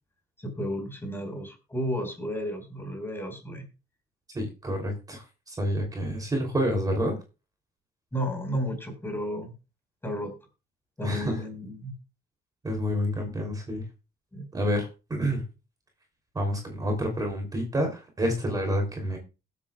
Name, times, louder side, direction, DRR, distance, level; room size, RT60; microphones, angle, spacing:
voice 1, 0.4-3.6 8.1-9.5 10.0-10.3 11.0-11.9 14.3-14.5, equal, 15° left, 4 dB, 4.6 m, -33 dB
voice 2, 4.3-7.2 11.0-11.4 12.6-13.8 14.5-15.4 16.3-19.2, equal, 20° right, 2 dB, 3.2 m, -28 dB
21.0 x 8.5 x 2.4 m, 0.31 s
cardioid pair, 125°, 17 cm